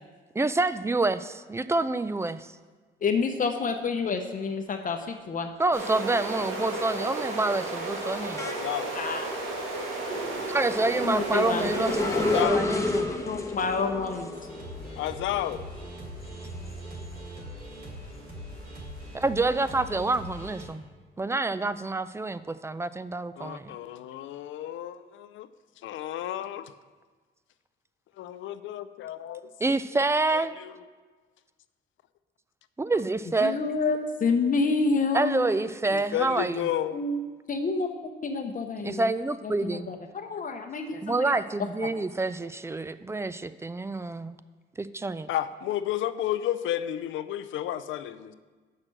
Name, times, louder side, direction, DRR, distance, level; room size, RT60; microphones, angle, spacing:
voice 1, 0.3-2.5 5.6-8.5 10.5-13.1 19.1-20.8 21.2-23.8 29.6-30.5 32.8-33.6 35.1-36.6 38.8-39.9 41.0-44.4 44.8-45.3, right 2 dB, 15° right, 14 dB, 0.3 m, -27 dB
voice 2, 3.0-5.5 8.9-9.3 11.0-11.9 13.3-14.3 33.4-35.5 36.9-37.2 37.5-37.9 38.2-39.1 39.6-41.4, left 4 dB, 40° left, 5 dB, 0.7 m, -28 dB
sound 1, 5.5-5.9 6.2-17.5 17.9-19.6, left 2 dB, 15° left, 0.9 m, -33 dB
sound 2, 5.7-12.4, right 2 dB, 85° right, 1.8 m, -33 dB
voice 3, 8.4-8.9 12.1-12.7 15.0-15.6 23.4-25.5 25.8-26.7 28.2-29.5 30.3-30.8 35.9-37.0 45.3-48.3, left 12 dB, 75° left, 13 dB, 0.5 m, -32 dB
sound 3, 14.3-20.7, equal, 50° right, 3.1 m, -41 dB
6.6 x 6.1 x 7.3 m, 1.4 s
cardioid pair, 90°, 20 cm